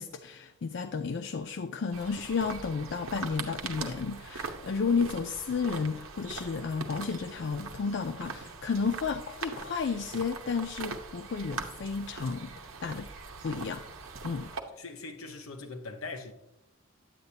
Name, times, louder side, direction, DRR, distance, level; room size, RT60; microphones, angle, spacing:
voice 1, 0.0-12.5 12.8-13.1 13.4-13.8 14.2-14.5, left 5 dB, 55° left, 0.4 m, -32 dB
sound 1, 1.9-14.6, right 4 dB, 80° right, 0.9 m, -41 dB
voice 2, 14.5-16.3, left 3 dB, 90° left, 0.9 m, -42 dB
9.1 x 8.0 x 2.8 m
head